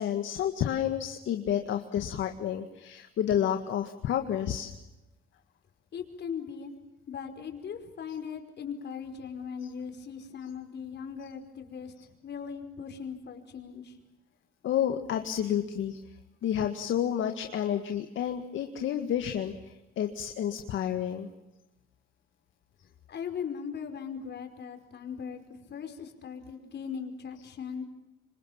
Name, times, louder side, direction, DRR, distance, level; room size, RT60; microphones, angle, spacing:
voice 1, 0.0-4.8 14.6-16.0 16.4-21.3, left 10 dB, 75° left, 6 dB, 1.9 m, -30 dB
voice 2, 5.9-6.7 7.1-11.9 12.2-14.0 23.1-27.8, left 7 dB, 60° left, 5 dB, 5.2 m, -39 dB
27.0 x 25.0 x 7.3 m, 0.98 s
cardioid pair, 90°, 20 cm